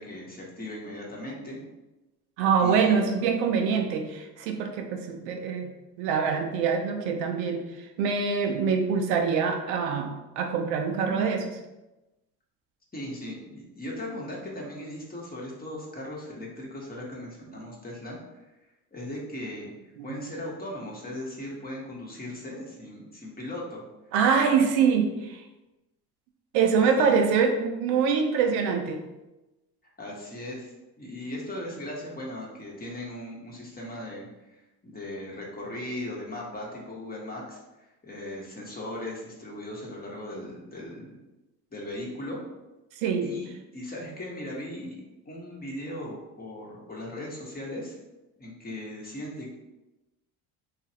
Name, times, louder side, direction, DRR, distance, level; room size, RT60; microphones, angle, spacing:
voice 1, 0.0-1.6 2.6-3.0 12.9-18.2 18.9-19.7 20.0-23.8 24.5-24.7 26.9-27.1 30.0-34.3 34.8-37.6 38.0-41.2 41.7-42.4 43.2-45.0 45.3-48.0 48.4-49.5, left 1 dB, 20° left, -3 dB, 0.9 m, -38 dB
voice 2, 2.4-5.7 6.0-11.6 20.0-20.2 24.1-25.4 26.5-29.0 43.0-43.3, right 6 dB, 75° right, 4 dB, 0.5 m, -25 dB
3.0 x 2.4 x 2.7 m, 1.0 s
hypercardioid pair, 70°, 45 cm